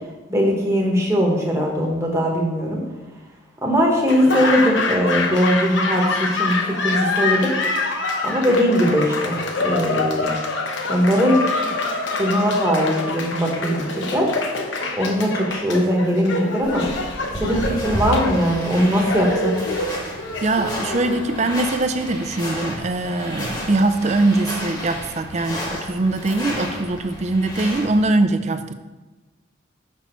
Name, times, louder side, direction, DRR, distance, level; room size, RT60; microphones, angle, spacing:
voice 1, 0.3-2.8 3.6-7.5 8.2-10.3 10.9-11.4 12.1-14.3 14.9-16.8 17.4-19.5, equal, 15° right, -1 dB, 1.1 m, -20 dB
Laughter / Applause, 4.0-22.1, left 3 dB, 65° left, 0.8 m, -26 dB
sound 1, 16.6-28.1, left 1 dB, 20° left, 1.2 m, -31 dB
voice 2, 20.4-28.7, right 2 dB, 35° right, 9 dB, 0.4 m, -22 dB
6.0 x 6.0 x 4.5 m, 1.2 s
head